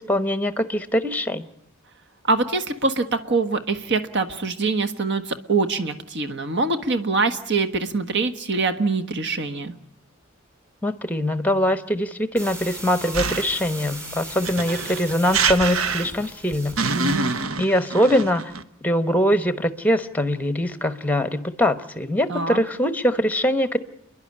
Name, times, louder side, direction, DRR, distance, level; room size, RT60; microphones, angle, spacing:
voice 1, 0.0-1.4 10.8-16.8 17.6-18.5 18.8-23.8, equal, 10° left, 11 dB, 1.0 m, -22 dB
voice 2, 2.3-9.7 16.9-17.3 22.3-22.6, right 3 dB, 55° right, 9 dB, 1.5 m, -24 dB
sound 1, 12.4-17.5, right 1 dB, 15° right, 6.0 m, -38 dB
sound 2, 13.1-13.7 14.4-16.3 16.8-18.6, right 4 dB, 80° right, 0.9 m, -25 dB
29.5 x 11.0 x 9.8 m, 0.75 s
head